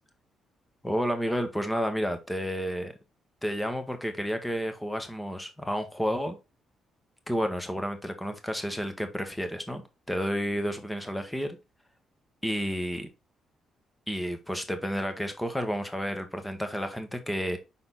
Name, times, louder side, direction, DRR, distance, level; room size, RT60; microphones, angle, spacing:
voice 1, 0.8-2.9 3.4-6.4 7.3-9.8 10.1-11.6 12.4-13.1 14.1-17.6, equal, 5° left, 1.4 m, -31 dB
5.7 x 4.2 x 3.9 m
cardioid pair, 90°, 0 cm